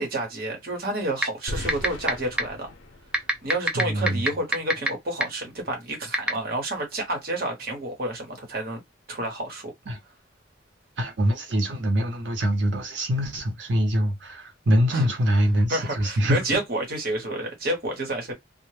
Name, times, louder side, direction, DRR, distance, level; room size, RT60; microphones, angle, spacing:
voice 1, 0.0-2.7 3.2-8.8 9.1-9.7 14.9-15.1 15.7-18.3, right 1 dB, 55° right, 1.0 m, -29 dB
sound 1, 1.2-1.3 1.7-2.1 2.4-2.5 3.1-4.9 5.2-5.3 6.1-6.3, equal, 5° right, 0.3 m, -20 dB
sound 2, 1.5-4.4, left 1 dB, 90° left, 0.6 m, -39 dB
voice 2, 3.7-4.2 9.9-10.0 11.0-16.4, equal, 75° right, 0.7 m, -24 dB
2.1 x 2.0 x 3.1 m
head